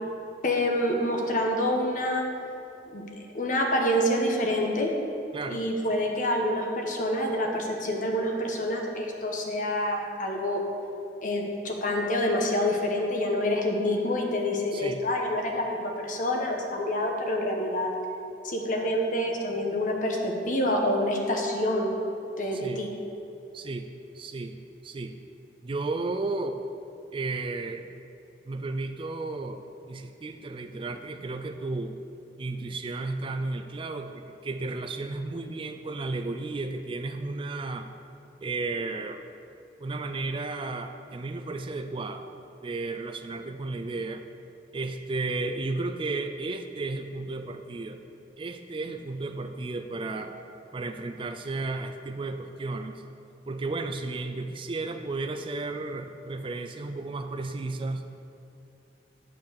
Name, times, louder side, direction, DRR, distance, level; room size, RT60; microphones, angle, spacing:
voice 1, 0.4-2.3 2.9-3.0 3.3-4.9 5.5-10.6 11.2-17.9 18.4-21.9 22.4-22.9, left 1 dB, 50° left, 1 dB, 1.2 m, -27 dB
voice 2, 5.3-5.7 14.7-15.0 22.5-22.9 23.5-23.9 24.1-24.6 24.8-25.2 25.6-26.6 27.1-27.9 28.5-29.6 29.9-32.0 32.4-37.9 38.4-39.2 39.8-42.3 42.6-44.2 44.7-48.0 48.4-50.4 50.7-53.0 53.5-58.0, right 3 dB, 30° right, 8 dB, 0.4 m, -33 dB
9.5 x 4.7 x 7.1 m, 2.8 s
head